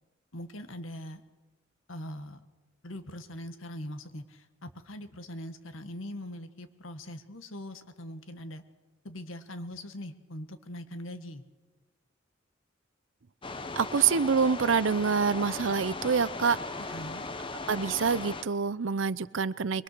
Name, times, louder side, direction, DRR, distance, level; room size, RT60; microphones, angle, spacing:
voice 1, 0.3-1.2 1.9-2.4 2.8-8.6 9.0-11.4 16.8-17.3, left 1 dB, 90° left, 9 dB, 1.5 m, -41 dB
sound 1, 13.4-18.4, left 3 dB, 25° left, 1.0 m, -38 dB
voice 2, 13.8-16.6 17.7-19.8, right 5 dB, 75° right, 18 dB, 0.6 m, -26 dB
23.0 x 22.0 x 6.7 m, 1.3 s
head